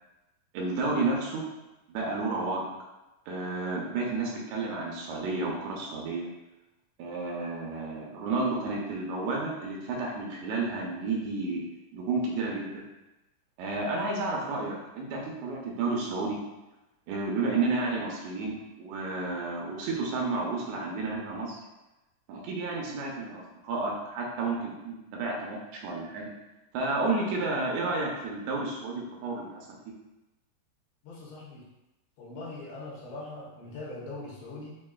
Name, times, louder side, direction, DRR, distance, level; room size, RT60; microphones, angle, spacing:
voice 1, 0.5-1.4 1.9-2.7 3.3-6.3 7.0-11.6 11.9-12.7 13.6-16.4 17.1-21.6 22.3-26.2 26.7-29.5, right 3 dB, 80° right, -2 dB, 2.7 m, -31 dB
voice 2, 31.0-31.6 32.2-34.8, left 2 dB, 80° left, -5 dB, 3.2 m, -41 dB
7.3 x 2.5 x 2.3 m, 1.0 s
omnidirectional pair, 5.0 m